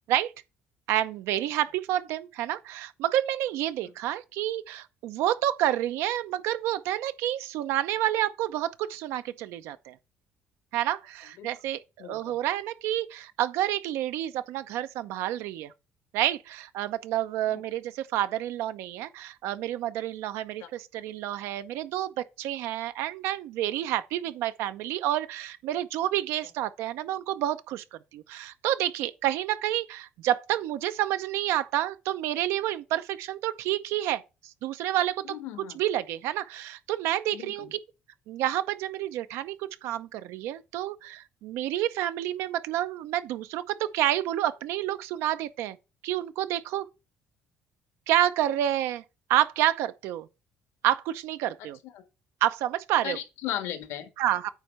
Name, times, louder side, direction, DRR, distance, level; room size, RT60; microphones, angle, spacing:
voice 1, 0.9-10.0 10.7-15.7 16.1-35.3 35.7-37.8 38.3-45.8 46.0-46.9 48.1-49.0 49.3-50.3 50.8-51.8 52.4-53.2 54.2-54.5, right 13 dB, 85° right, 0.7 m, -29 dB
voice 2, 12.0-12.4 17.5-17.6 20.6-20.7 35.2-35.8 37.3-37.7 51.6-52.0 53.0-54.1, left 11 dB, 90° left, 1.6 m, -37 dB
9.1 x 3.2 x 6.6 m
cardioid pair, 135°, 4 cm